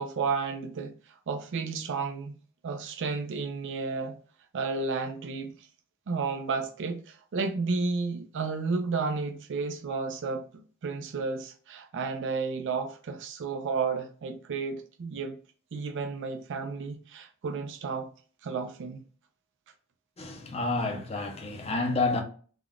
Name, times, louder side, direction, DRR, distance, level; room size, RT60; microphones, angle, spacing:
voice 1, 0.0-2.4 2.6-4.2 4.5-5.7 6.1-10.5 10.8-15.4 15.7-18.1 18.4-19.0, right 4 dB, 55° right, 0.4 m, -32 dB
voice 2, 20.2-22.2, left 3 dB, 30° left, 0.6 m, -29 dB
3.5 x 2.3 x 2.3 m
head